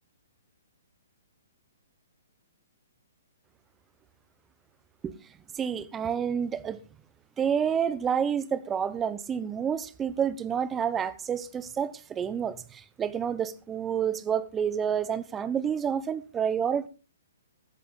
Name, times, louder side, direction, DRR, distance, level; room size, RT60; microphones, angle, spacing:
voice 1, 5.5-6.8 7.4-16.9, right 8 dB, 15° right, 0.9 m, -29 dB
14.5 x 13.0 x 3.8 m
hypercardioid pair, 140°, 0 cm